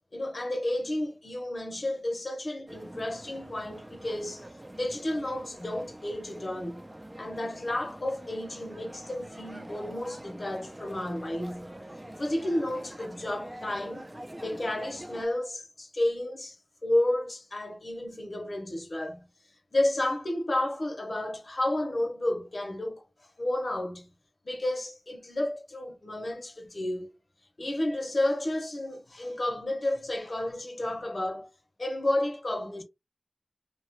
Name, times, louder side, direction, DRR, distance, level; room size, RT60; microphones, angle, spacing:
voice 1, 0.1-4.4 4.7-6.8 7.2-11.7 12.2-14.1 14.4-19.3 19.7-23.0 23.4-24.1 24.4-27.2 27.6-31.5 31.8-32.8, left 1 dB, 70° left, 0.9 m, -31 dB
sound 1, 2.7-15.3, right 1 dB, 25° right, 0.6 m, -45 dB
2.8 x 2.4 x 2.9 m
wide cardioid pair, 55°, 0 cm